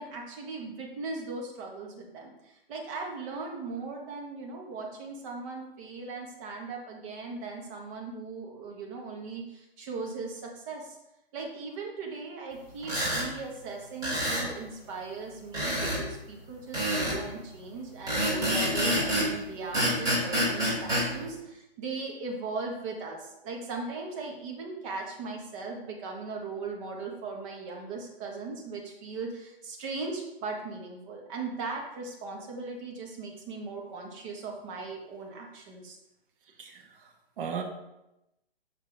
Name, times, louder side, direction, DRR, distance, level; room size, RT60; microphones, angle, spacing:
voice 1, 0.0-11.0 11.3-36.0, right 4 dB, 30° right, 0 dB, 1.5 m, -38 dB
sound 1, 12.8-13.3 14.0-14.5 15.5-16.0 16.7-17.2 18.1-19.3 19.7-21.1, equal, 10° right, 2.7 m, -27 dB
voice 2, 36.6-37.6, right 7 dB, 60° right, 3 dB, 1.4 m, -37 dB
6.9 x 5.7 x 3.5 m, 0.90 s
hypercardioid pair, 145°, 31 cm